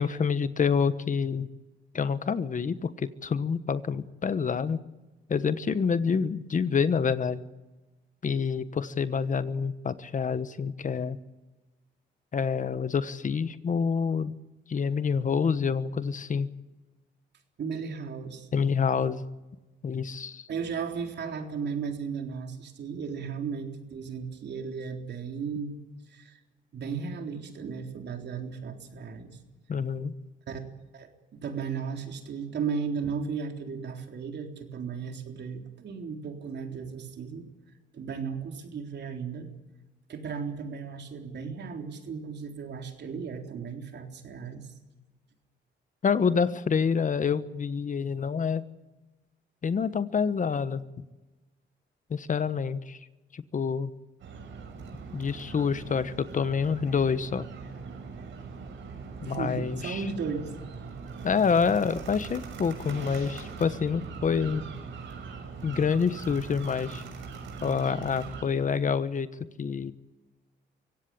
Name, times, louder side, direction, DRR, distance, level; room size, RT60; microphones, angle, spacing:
voice 1, 0.0-1.5 1.9-4.8 5.3-7.4 8.2-11.2 12.3-14.3 14.7-16.5 18.5-19.2 19.8-20.5 29.7-30.1 46.0-48.6 49.6-50.8 52.1-53.0 53.3-53.9 55.1-57.5 59.3-60.0 61.2-64.6 65.6-67.0 67.6-69.3 69.6-69.9, left 6 dB, 40° left, 13 dB, 1.2 m, -27 dB
voice 2, 17.6-18.5 20.5-25.8 26.1-26.4 26.7-29.4 30.5-30.6 30.9-37.5 37.9-39.5 40.1-44.7 59.2-60.5, right 6 dB, 60° right, 4 dB, 3.8 m, -35 dB
sound 1, 54.2-68.4, right 5 dB, 75° right, 6.4 m, -41 dB
24.5 x 17.0 x 8.7 m, 1.1 s
cardioid pair, 90°, 20 cm